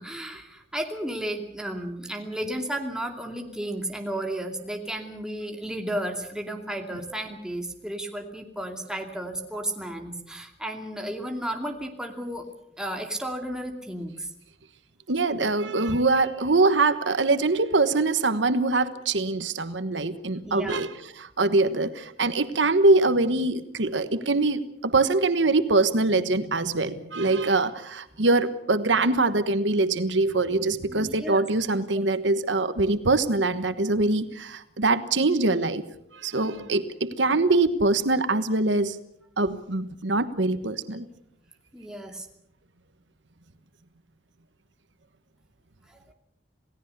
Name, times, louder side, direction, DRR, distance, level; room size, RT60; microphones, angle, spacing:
voice 1, 0.0-12.5 12.8-14.3 20.4-20.9 30.9-31.5 36.3-36.7 41.7-42.3 45.9-46.0, right 1 dB, 5° right, 3 dB, 2.6 m, -33 dB
voice 2, 15.1-35.8 36.1-39.0 39.4-41.0, right 3 dB, 85° right, 11 dB, 1.3 m, -23 dB
28.0 x 17.5 x 6.8 m, 0.76 s
head